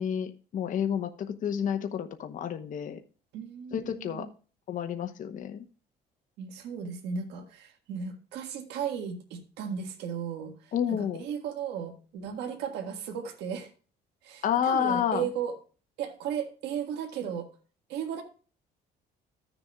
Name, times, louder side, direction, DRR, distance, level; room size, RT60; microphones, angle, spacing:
voice 1, 0.0-3.0 3.7-4.3 4.7-5.6 10.7-11.2 14.4-15.3, left 8 dB, 50° left, 7 dB, 0.9 m, -30 dB
voice 2, 3.3-4.3 6.4-13.7 14.2-15.6 16.0-17.5 17.9-18.2, right 7 dB, 85° right, 3 dB, 1.7 m, -35 dB
14.0 x 6.9 x 2.3 m, 0.37 s
cardioid pair, 110°, 17 cm